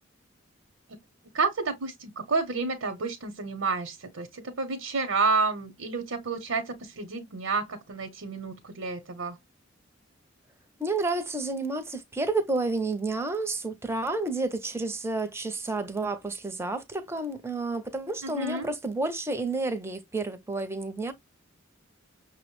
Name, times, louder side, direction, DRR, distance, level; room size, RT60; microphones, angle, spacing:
voice 1, 1.3-9.4 18.2-18.7, right 4 dB, 80° right, 0.8 m, -30 dB
voice 2, 10.8-21.1, right 3 dB, 15° right, 0.6 m, -30 dB
6.0 x 2.0 x 3.0 m
head